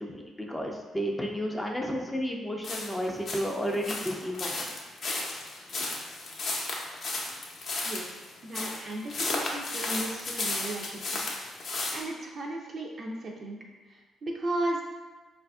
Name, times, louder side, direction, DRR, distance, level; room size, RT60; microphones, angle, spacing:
voice 1, 0.0-4.6, equal, 10° left, 0 dB, 0.4 m, -32 dB
sound 1, 2.6-12.0, left 2 dB, 55° left, 0.6 m, -34 dB
voice 2, 7.8-11.3 11.9-13.6 13.9-14.8, right 1 dB, 45° right, 0 dB, 0.5 m, -35 dB
3.9 x 2.5 x 2.3 m, 1.3 s
cardioid pair, 90°, 0 cm